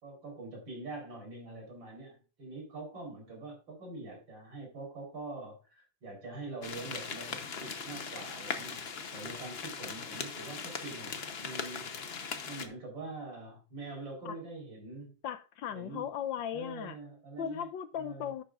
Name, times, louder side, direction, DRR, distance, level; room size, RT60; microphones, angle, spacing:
voice 1, 0.0-8.9 9.1-12.1 12.4-15.1 15.7-16.1 16.5-17.7 18.0-18.3, right 2 dB, 65° right, 1 dB, 4.6 m, -44 dB
sound 1, 6.6-12.7, left 5 dB, 45° left, 0.8 m, -39 dB
voice 2, 15.2-17.0 17.4-18.4, left 9 dB, 75° left, 12 dB, 1.4 m, -37 dB
11.0 x 8.6 x 2.5 m, 0.33 s
omnidirectional pair, 2.2 m